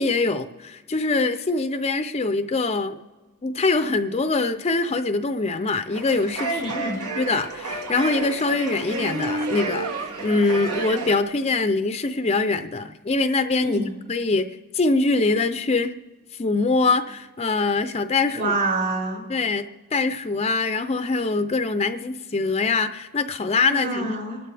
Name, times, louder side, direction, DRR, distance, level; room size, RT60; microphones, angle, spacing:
voice 1, 0.0-3.0 3.4-6.6 6.9-15.9 16.3-18.5 19.3-24.2, left 3 dB, 30° left, 9 dB, 0.5 m, -23 dB
sound 1, 5.9-11.2, right 2 dB, 75° right, 1.8 m, -30 dB
voice 2, 6.5-7.0 13.6-13.9 18.3-19.2 23.7-24.4, right 2 dB, 45° right, -3 dB, 6.1 m, -26 dB
27.0 x 12.0 x 3.4 m, 1.3 s
head